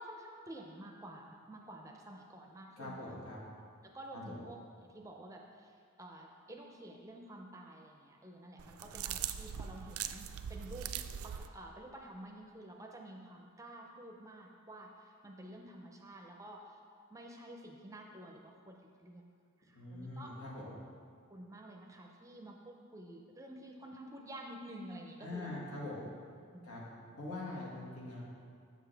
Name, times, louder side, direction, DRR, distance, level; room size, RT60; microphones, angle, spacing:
voice 1, 0.0-3.2 3.8-10.9 11.2-16.8 17.1-19.2 19.6-20.3 21.3-25.5 26.5-26.8, right 1 dB, 15° right, 1 dB, 0.5 m, -50 dB
voice 2, 2.8-3.4 4.1-4.4 19.8-20.7 25.2-26.0 26.6-26.9 27.2-28.3, left 2 dB, 90° left, -5 dB, 1.8 m, -43 dB
sound 1, 8.6-11.5, right 9 dB, 85° right, 0.3 m, -41 dB
7.6 x 6.8 x 3.3 m, 2.2 s
head